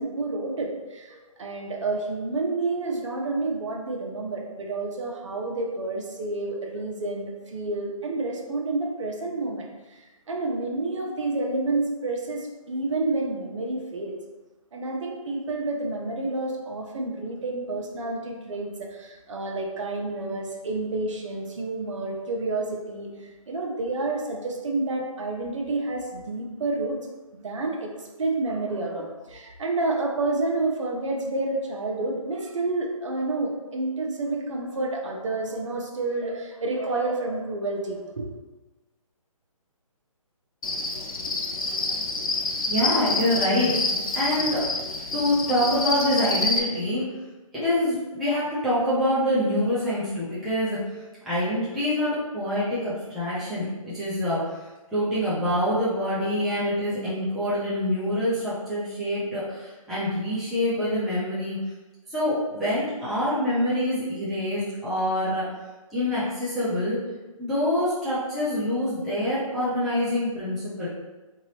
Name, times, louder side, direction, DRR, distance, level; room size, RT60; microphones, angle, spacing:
voice 1, 0.0-14.1 14.7-27.0 27.3-38.3, right 2 dB, 60° right, 0 dB, 0.9 m, -29 dB
Cricket, 40.6-46.6, left 3 dB, 80° left, 0.7 m, -27 dB
voice 2, 42.7-43.9 44.1-44.6 45.1-47.0 47.5-54.6 54.9-61.6 62.1-65.5 65.9-67.0 67.4-70.9, left 1 dB, ahead, -13 dB, 0.4 m, -26 dB
3.7 x 2.9 x 3.1 m, 1.2 s
hypercardioid pair, 150°, 18 cm